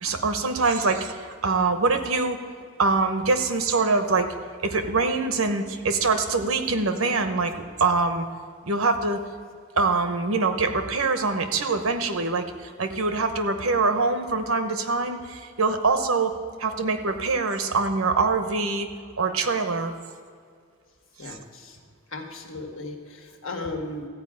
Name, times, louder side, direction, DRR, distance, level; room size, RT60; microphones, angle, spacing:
voice 1, 0.0-2.4 2.8-4.3 4.6-8.3 8.6-9.2 9.8-16.3 16.6-18.9 19.2-19.9 21.2-21.4, right 3 dB, 80° right, 7 dB, 1.0 m, -24 dB
voice 2, 21.2-21.8 22.1-24.1, left 2 dB, 70° left, 2 dB, 1.5 m, -36 dB
14.5 x 4.9 x 8.6 m, 2.1 s
head